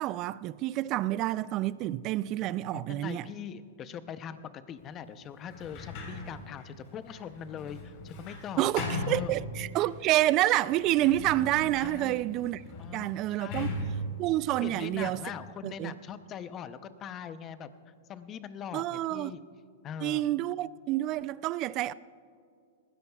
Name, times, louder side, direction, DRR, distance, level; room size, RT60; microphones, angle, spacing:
voice 1, 0.0-3.2 8.6-12.6 12.9-13.7 14.2-15.2 15.6-15.9 18.7-19.4 20.0-21.9, right 15 dB, 35° right, 0.3 m, -28 dB
voice 2, 2.7-8.7 9.1-9.3 11.8-12.2 12.8-13.8 14.6-17.7 18.1-19.4 19.8-20.2, left 8 dB, 25° left, 0.6 m, -41 dB
Sliding door, 5.5-10.0 10.6-15.5, left 2 dB, 45° left, 3.8 m, -39 dB
20.0 x 16.0 x 2.3 m
hypercardioid pair, 140°, 0 cm